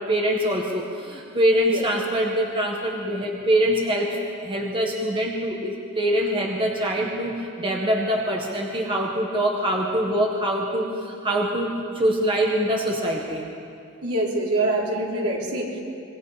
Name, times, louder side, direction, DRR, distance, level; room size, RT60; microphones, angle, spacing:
voice 1, 0.0-13.5, equal, 25° right, -1 dB, 1.7 m, -24 dB
voice 2, 14.0-15.8, right 2 dB, 75° right, -3 dB, 4.1 m, -25 dB
25.5 x 22.5 x 5.2 m, 2.4 s
head